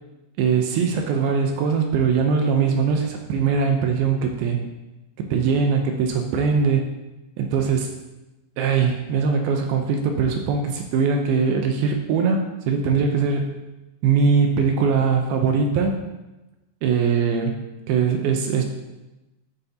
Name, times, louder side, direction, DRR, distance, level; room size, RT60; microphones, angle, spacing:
voice 1, 0.4-4.6 5.2-6.9 7.4-7.9 8.6-13.5 14.0-16.0 16.8-18.6, right 5 dB, 80° right, 3 dB, 2.2 m, -21 dB
13.5 x 7.7 x 2.8 m, 1.0 s
omnidirectional pair, 5.2 m